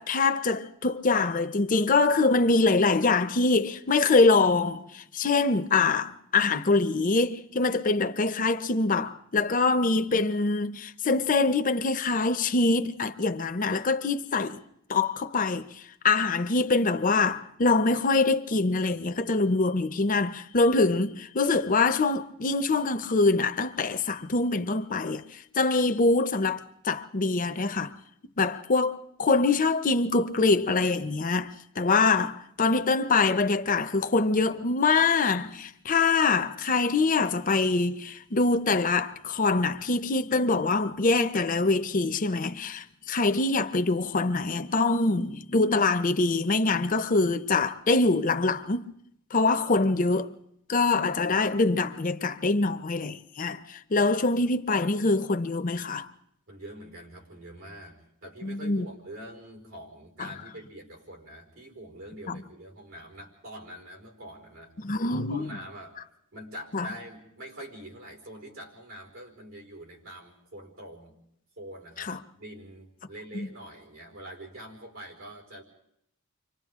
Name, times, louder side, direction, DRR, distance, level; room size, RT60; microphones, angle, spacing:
voice 1, 0.0-14.6 14.9-15.7 16.0-25.2 25.6-27.9 28.4-48.9 49.3-50.3 50.7-56.1 58.4-58.9 60.2-60.3 62.3-62.4 64.8-65.5 66.7-66.9 72.1-72.2 73.3-73.5, left 3 dB, 40° left, 0.7 m, -24 dB
voice 2, 56.5-64.7 65.2-66.0 66.3-71.2 71.6-72.1 72.4-75.6, right 1 dB, 85° right, 4.9 m, -44 dB
30.0 x 25.0 x 3.7 m
head